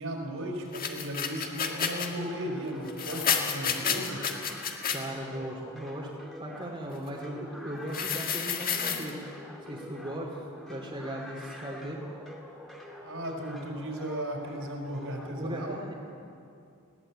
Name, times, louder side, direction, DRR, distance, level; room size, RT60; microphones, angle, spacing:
voice 1, 0.0-4.2 13.0-15.8, equal, 65° right, 1 dB, 5.0 m, -36 dB
sound 1, 0.7-2.1 2.9-5.0 7.9-9.1, left 7 dB, 40° left, 1.8 m, -30 dB
sound 2, 1.4-15.3, left 1 dB, ahead, 2.4 m, -47 dB
voice 2, 4.9-6.1 6.4-9.2 9.7-10.3 10.7-12.0 15.3-15.9, right 1 dB, 25° right, -3 dB, 2.5 m, -37 dB
20.5 x 17.0 x 8.8 m, 2.5 s
head